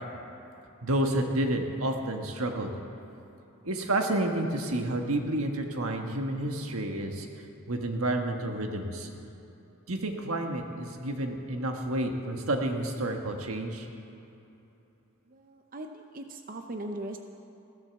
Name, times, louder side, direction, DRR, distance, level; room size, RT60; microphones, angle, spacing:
voice 1, 0.8-2.7 3.6-7.3 7.7-9.1 9.9-13.9, right 1 dB, 90° right, 3 dB, 1.5 m, -30 dB
voice 2, 15.3-17.2, right 1 dB, 40° right, 4 dB, 0.7 m, -39 dB
16.0 x 10.5 x 7.1 m, 2.9 s
head